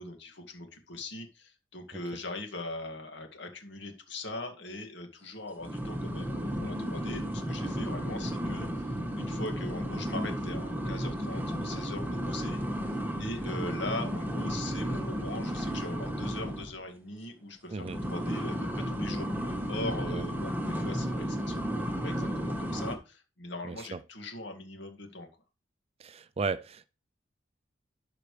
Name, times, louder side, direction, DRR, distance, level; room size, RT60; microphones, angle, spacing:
voice 1, 0.0-12.6 12.9-25.3, left 2 dB, 65° left, 2.1 m, -41 dB
sound 1, 5.6-16.7 17.8-23.0, equal, 10° right, 1.4 m, -33 dB
voice 2, 23.7-24.0 26.0-26.9, right 4 dB, 35° right, 0.4 m, -35 dB
12.0 x 5.9 x 3.3 m
head